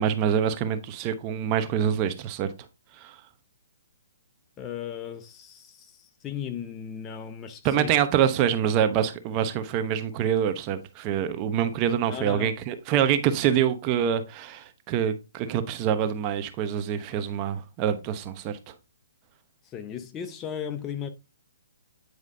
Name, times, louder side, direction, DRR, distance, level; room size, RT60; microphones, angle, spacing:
voice 1, 0.0-2.5 3.0-3.2 7.6-18.7, right 9 dB, 30° right, 0.9 m, -25 dB
voice 2, 4.6-7.9 12.1-12.5 19.6-21.1, left 8 dB, 20° left, 0.7 m, -36 dB
9.4 x 4.8 x 2.7 m
hypercardioid pair, 145°, 0 cm